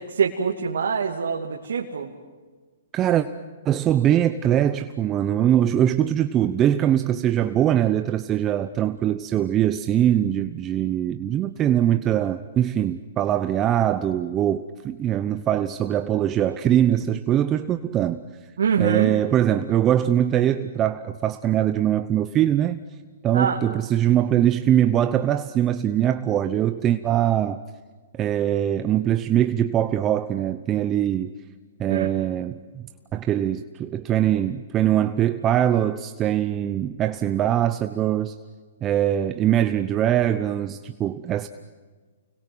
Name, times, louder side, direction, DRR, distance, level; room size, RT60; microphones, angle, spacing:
voice 1, 0.1-2.1 18.6-19.1 23.3-23.6 31.9-32.1, right 6 dB, 80° right, 2.6 m, -24 dB
voice 2, 2.9-3.3 3.6-18.2 18.8-22.8 23.2-27.6 28.1-31.3 31.8-32.9 33.1-38.3 38.8-41.5, right 11 dB, 20° right, 0.9 m, -22 dB
29.5 x 22.0 x 8.0 m
hypercardioid pair, 145°, 0 cm